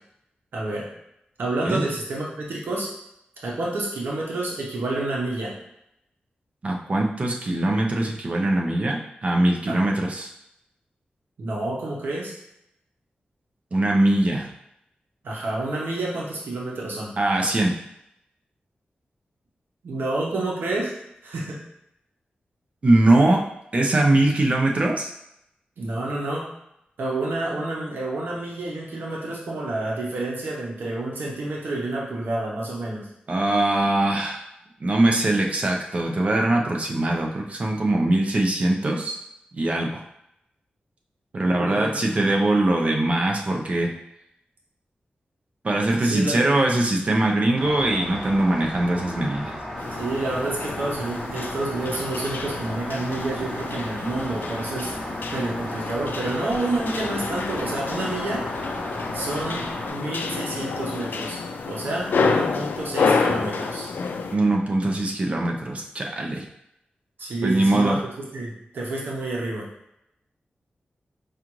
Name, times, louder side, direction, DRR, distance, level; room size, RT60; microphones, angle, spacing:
voice 1, 0.5-0.9 1.4-2.9 3.4-5.5 9.7-9.8 11.4-12.3 15.2-17.1 19.8-20.9 21.2-21.6 25.8-26.5 27.0-33.1 41.4-41.9 42.2-42.3 46.0-46.4 50.0-54.9 55.3-58.4 59.1-61.4 61.7-63.9 67.2-68.0 68.3-69.7, right 2 dB, 90° right, -3 dB, 0.8 m, -29 dB
voice 2, 6.6-10.3 13.7-14.5 17.2-17.7 22.8-23.4 23.7-25.1 33.3-34.4 34.8-39.2 39.5-40.0 41.3-43.9 45.6-49.5 64.3-66.4 67.4-68.0, right 1 dB, 40° right, 0 dB, 0.6 m, -22 dB
Rain, 47.5-59.9, equal, ahead, 1.0 m, -34 dB
sound 1, 49.8-64.4, left 4 dB, 75° left, 0.3 m, -29 dB
4.8 x 2.5 x 3.0 m, 0.80 s
wide cardioid pair, 130°, 3 cm